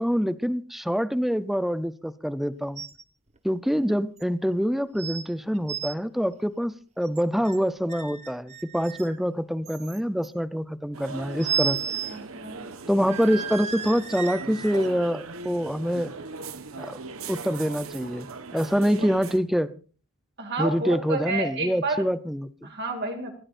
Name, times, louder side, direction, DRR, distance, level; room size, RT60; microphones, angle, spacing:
voice 1, 0.0-2.8 3.4-11.8 12.9-16.1 16.8-17.0 17.3-18.3 18.5-19.7 20.6-22.7, equal, ahead, 13 dB, 0.6 m, -26 dB
sound 1, 2.8-3.0 3.4-3.5 4.2-4.3 5.0-5.2 5.5-5.9 7.1-7.6 7.9-9.2 9.7-10.3 11.4-12.2 12.5-12.6 13.1-14.9 15.4-15.5, right 7 dB, 30° right, 1.0 m, -33 dB
sound 2, 10.9-19.4, right 4 dB, 70° right, 1.3 m, -39 dB
voice 2, 12.0-12.6 20.4-22.1 22.6-23.3, right 3 dB, 50° right, 4 dB, 2.4 m, -30 dB
26.0 x 15.0 x 2.6 m, 0.38 s
head